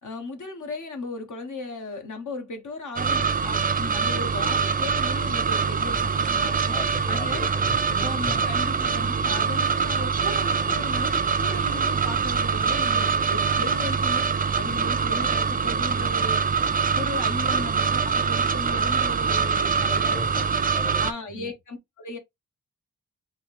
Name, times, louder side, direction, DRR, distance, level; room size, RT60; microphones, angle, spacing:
voice 1, 0.0-6.7 7.1-7.4 8.0-16.4 16.9-20.5 21.0-22.2, left 3 dB, 60° left, 1.2 m, -36 dB
sound 1, 3.0-21.1, right 6 dB, 25° right, 0.4 m, -24 dB
voice 2, 6.7-8.5 19.5-21.5, left 2 dB, 25° left, 1.0 m, -38 dB
4.4 x 2.8 x 3.3 m
cardioid pair, 90°, 35 cm